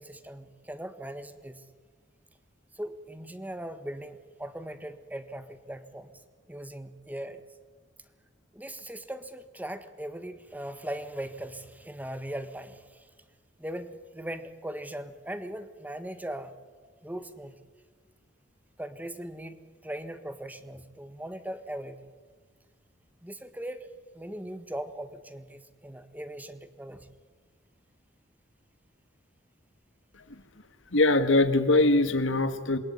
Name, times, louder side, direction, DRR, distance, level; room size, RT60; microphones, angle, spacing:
voice 1, 0.0-1.6 2.7-6.1 6.5-7.4 8.5-13.1 13.6-16.5 17.0-17.5 18.8-22.1 23.2-23.9 24.1-27.1, right 1 dB, 10° right, 10 dB, 1.6 m, -39 dB
voice 2, 30.9-32.8, left 2 dB, 85° left, 10 dB, 1.9 m, -22 dB
27.5 x 22.0 x 9.8 m, 1.5 s
head